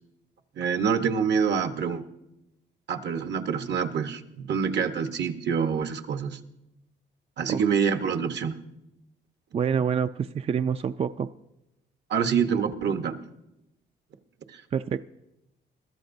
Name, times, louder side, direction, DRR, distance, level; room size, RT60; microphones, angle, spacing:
voice 1, 0.6-2.0 2.9-6.4 7.4-8.6 12.1-13.2 14.5-14.6, right 6 dB, 60° right, 8 dB, 1.1 m, -26 dB
voice 2, 9.5-11.3 14.7-15.0, right 7 dB, 30° right, 11 dB, 0.3 m, -26 dB
22.0 x 13.5 x 2.6 m, 0.91 s
cardioid pair, 90°, 20 cm